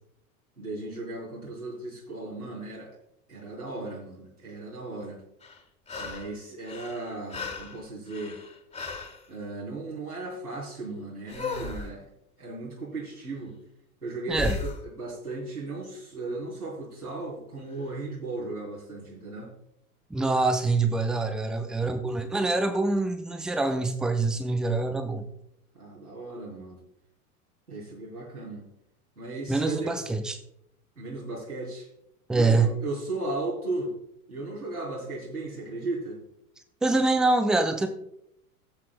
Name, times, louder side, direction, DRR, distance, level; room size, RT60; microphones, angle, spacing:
voice 1, 0.6-3.0 3.3-5.2 6.0-8.4 9.3-12.0 12.4-13.6 14.0-19.5 21.4-22.0 25.7-26.8 27.7-28.7 29.2-30.0 31.0-31.9 32.3-33.9 34.3-36.2, right 2 dB, 90° right, -5 dB, 3.4 m, -36 dB
sound 1, 5.4-6.4 6.6-9.2 11.3-11.9 14.3-14.8 17.7-17.8, left 4 dB, 15° left, 1.7 m, -36 dB
voice 2, 20.1-25.2 29.5-30.4 32.3-32.7 36.8-37.9, right 3 dB, ahead, 8 dB, 0.3 m, -25 dB
20.0 x 7.5 x 2.2 m, 0.75 s
figure-of-eight pair, 85°, 44 cm